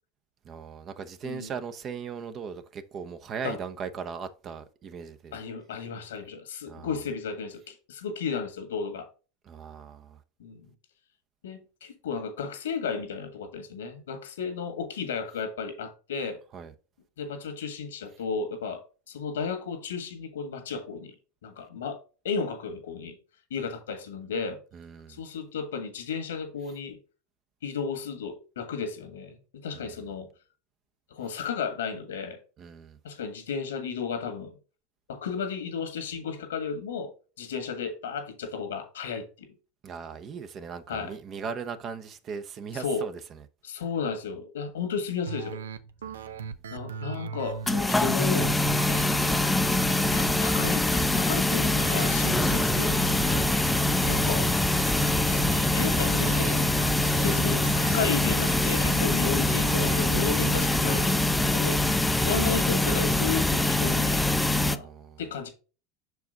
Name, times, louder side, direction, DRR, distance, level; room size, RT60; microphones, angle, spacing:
voice 1, 0.4-5.4 6.7-6.9 9.5-10.2 16.5-16.7 24.7-25.2 29.7-30.0 32.6-33.0 39.8-43.4 46.0-46.5 57.1-57.4 61.9-62.1 64.7-65.2, right 6 dB, 40° right, 0.8 m, -39 dB
voice 2, 5.3-9.1 10.4-10.7 11.4-16.4 17.2-21.2 21.4-22.0 22.2-23.2 23.5-24.6 25.1-27.0 27.6-30.3 31.1-32.4 33.0-34.6 35.1-37.1 37.4-39.5 40.9-41.1 42.7-43.0 43.6-45.6 46.7-49.0 50.1-53.4 54.1-54.5 55.7-56.7 57.2-64.9 65.2-65.5, left 6 dB, 85° left, 1.4 m, -33 dB
sound 1, 45.3-61.3, right 7 dB, 90° right, 0.5 m, -39 dB
sound 2, 47.7-64.8, left 1 dB, 10° left, 0.5 m, -24 dB
6.0 x 4.7 x 3.9 m
hypercardioid pair, 95°, 0 cm